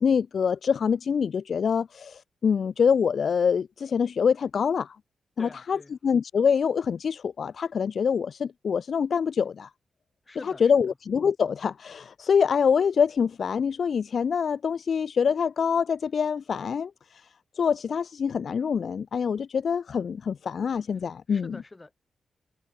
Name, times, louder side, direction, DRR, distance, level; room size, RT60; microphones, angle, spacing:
voice 1, 0.0-5.0 5.4-9.7 10.4-17.3 17.5-21.6, left 6 dB, 50° left, 0.8 m, -25 dB
voice 2, 5.4-5.9 10.3-10.9 21.3-21.9, left 2 dB, 15° left, 6.8 m, -45 dB
wide cardioid pair, 175°, 0 cm